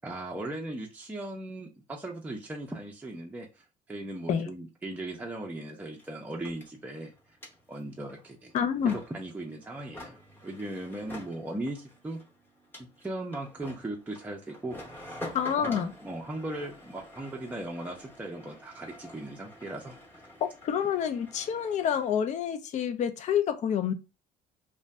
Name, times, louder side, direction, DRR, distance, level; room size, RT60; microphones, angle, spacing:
voice 1, 0.0-3.5 3.9-7.1 7.7-8.5 8.8-10.2 10.4-12.2 12.8-14.8 15.6-20.2, right 1 dB, 10° right, 0.5 m, -38 dB
sound 1, 5.3-5.4 5.5-22.1, left 1 dB, 10° left, 0.8 m, -48 dB
voice 2, 8.5-9.0 15.3-15.9 20.6-23.9, left 8 dB, 45° left, 0.4 m, -28 dB
2.5 x 2.2 x 3.2 m
cardioid pair, 110°, 17 cm